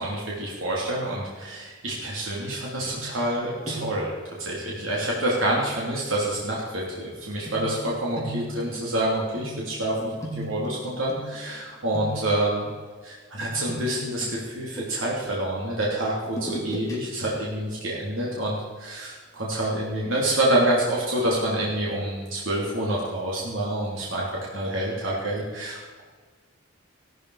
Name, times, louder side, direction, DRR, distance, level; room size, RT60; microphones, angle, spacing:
voice 1, 0.0-12.7 13.0-24.3 24.5-26.0, right 1 dB, 75° right, -4 dB, 3.2 m, -27 dB
sound 1, 2.9-3.4 3.6-4.1 5.5-5.7 7.5-11.6 11.9-12.5 13.4-15.2 16.3-17.0 17.3-17.5, equal, 15° left, 3.2 m, -37 dB
17.0 x 13.0 x 4.9 m, 1.5 s
head